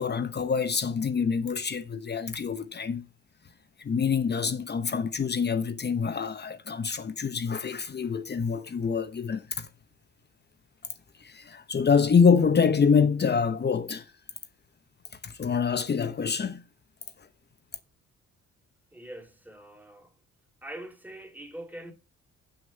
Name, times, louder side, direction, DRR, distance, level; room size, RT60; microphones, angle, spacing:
voice 1, 0.0-3.0 3.8-9.7 11.2-14.0 15.2-16.6, left 6 dB, 35° left, 0.9 m, -26 dB
voice 2, 18.9-20.1 20.6-21.9, right 1 dB, 5° right, 2.2 m, -43 dB
7.3 x 6.5 x 5.8 m
cardioid pair, 90°, 30 cm